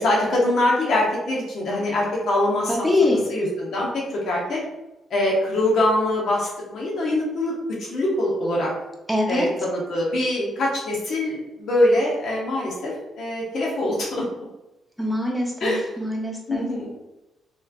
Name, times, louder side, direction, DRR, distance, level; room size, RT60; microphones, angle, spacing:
voice 1, 0.0-2.8 3.3-4.6 5.1-8.7 9.3-14.3 15.6-15.9 16.5-16.9, left 1 dB, 65° left, -3 dB, 0.9 m, -23 dB
voice 2, 2.7-3.2 9.1-9.5 15.0-16.7, left 2 dB, 5° left, 0 dB, 0.8 m, -23 dB
3.2 x 3.1 x 2.4 m, 0.97 s
cardioid pair, 90°, 0 cm